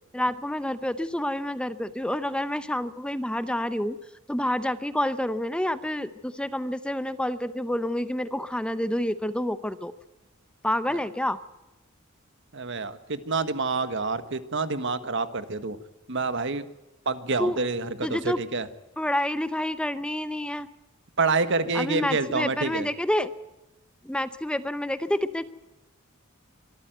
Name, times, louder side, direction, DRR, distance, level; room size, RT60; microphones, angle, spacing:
voice 1, 0.1-4.0 4.3-9.9 10.6-11.4 17.4-17.6 18.0-18.4 19.0-20.7 21.7-23.3 24.0-25.4, left 1 dB, 5° left, 13 dB, 0.7 m, -28 dB
voice 2, 12.5-15.8 16.1-16.6 17.0-18.7 21.2-22.9, right 3 dB, 60° right, 12 dB, 1.5 m, -27 dB
24.5 x 13.5 x 9.2 m, 1.0 s
head